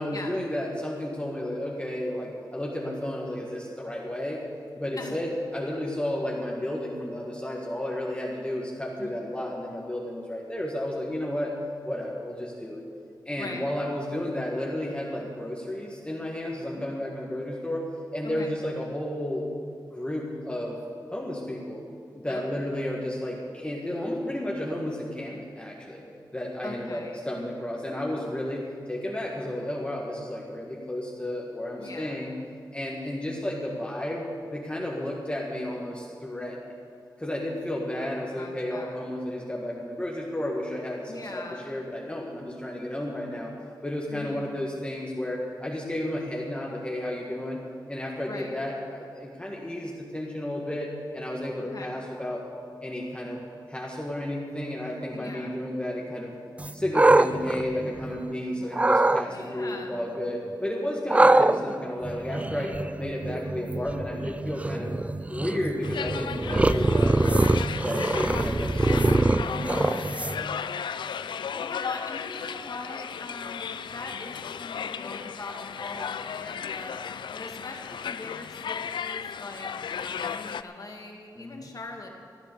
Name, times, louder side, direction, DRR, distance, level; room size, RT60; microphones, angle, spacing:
voice 1, 0.0-4.4 4.8-11.5 11.8-12.8 13.3-17.8 18.1-19.4 19.9-20.8 21.1-21.8 22.2-26.0 26.3-28.6 28.9-32.3 32.7-34.3 34.5-36.6 37.2-43.5 43.8-47.6 47.9-52.4 52.8-53.4 53.7-56.3 56.7-64.9 65.3-67.2 67.8-70.5 81.4-81.7, left 1 dB, 15° left, -3 dB, 1.8 m, -32 dB
voice 2, 22.3-22.6 26.6-27.2 31.8-32.2 38.4-39.0 41.1-41.8 44.1-44.4 48.3-48.6 51.7-51.9 55.1-55.6 59.3-60.0 61.1-61.3 64.8-64.9 71.6-76.9 77.3-79.7 80.0-82.1, left 2 dB, 50° left, 2 dB, 2.1 m, -41 dB
sound 1, 56.6-58.3 58.7-59.2 61.1-70.6, right 2 dB, 15° right, 0.4 m, -24 dB
sound 2, 65.8-80.6, left 7 dB, 80° left, 0.4 m, -35 dB
15.0 x 9.3 x 6.9 m, 2.3 s
cardioid pair, 65°, 8 cm